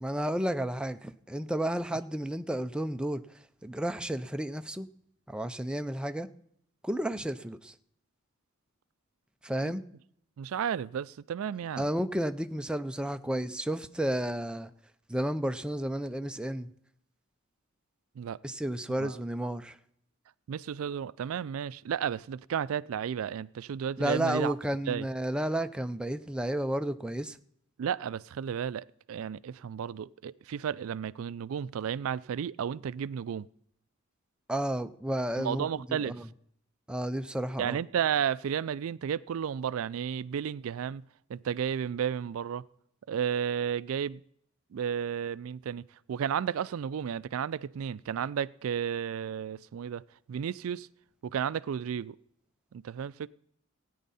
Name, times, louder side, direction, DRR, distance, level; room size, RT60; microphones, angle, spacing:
voice 1, 0.0-3.2 3.6-4.9 5.3-6.3 6.8-7.7 9.4-9.8 11.8-14.7 15.1-16.7 18.4-19.8 24.0-27.4 34.5-36.3 36.9-37.8, right 1 dB, 5° right, 0.4 m, -32 dB
voice 2, 10.4-11.9 18.2-18.4 19.0-19.1 20.5-24.5 24.9-25.1 27.8-33.5 35.4-36.2 37.6-41.0 41.3-42.6 43.1-44.2 44.7-45.8 46.1-50.0 50.3-50.9 51.2-52.2 52.7-53.3, right 8 dB, 70° right, 0.3 m, -33 dB
17.0 x 9.3 x 4.1 m
head